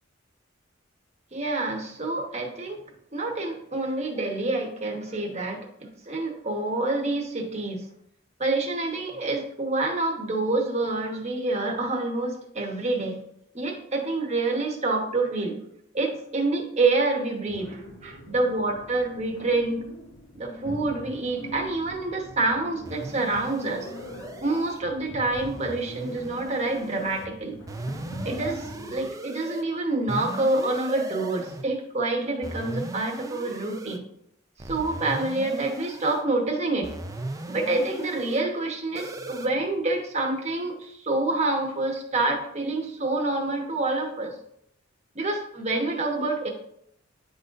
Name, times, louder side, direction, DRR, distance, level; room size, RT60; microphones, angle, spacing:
voice 1, 1.3-2.8 3.1-7.8 8.4-13.2 13.5-15.6 15.9-19.9 20.3-23.9 24.4-27.6 28.2-34.0 34.7-36.9 37.5-44.3 45.1-46.5, right 2 dB, 35° right, 1 dB, 1.1 m, -27 dB
sound 1, 17.5-29.1, equal, 90° left, 1.3 m, -43 dB
sound 2, 22.8-24.8 25.3-27.3 27.7-29.6 30.1-31.7 32.4-34.0 34.6-36.2 36.8-38.4 39.0-39.5, right 2 dB, 15° right, 0.3 m, -38 dB
9.6 x 3.9 x 2.6 m, 0.73 s
head